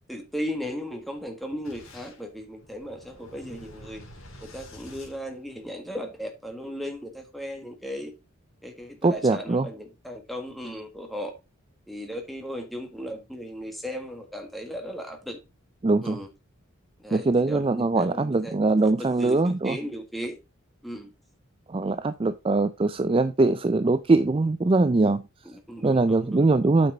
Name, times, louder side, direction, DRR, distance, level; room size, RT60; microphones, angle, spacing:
voice 1, 0.1-4.0 4.4-8.1 8.6-11.3 11.9-15.4 16.0-16.3 17.0-18.6 18.8-20.4 20.8-21.1 25.4-26.4, equal, ahead, 1.5 m, -36 dB
Boom, 1.6-6.0, left 1 dB, 75° left, 2.7 m, -48 dB
voice 2, 9.0-9.7 15.8-16.2 17.1-19.8 21.7-25.2 25.8-26.9, right 3 dB, 25° right, 0.3 m, -22 dB
8.6 x 5.9 x 3.9 m
head